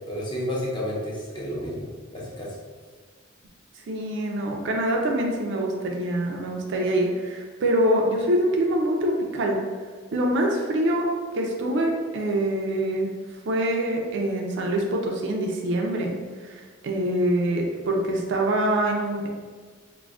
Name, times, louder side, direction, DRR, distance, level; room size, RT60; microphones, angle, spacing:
voice 1, 0.1-2.5, equal, 20° left, -6 dB, 0.6 m, -31 dB
voice 2, 3.9-9.6 10.1-11.1 11.3-13.1 13.5-16.2 16.4-19.3, right 1 dB, 60° right, 1 dB, 0.4 m, -25 dB
2.4 x 2.1 x 3.3 m, 1.5 s
head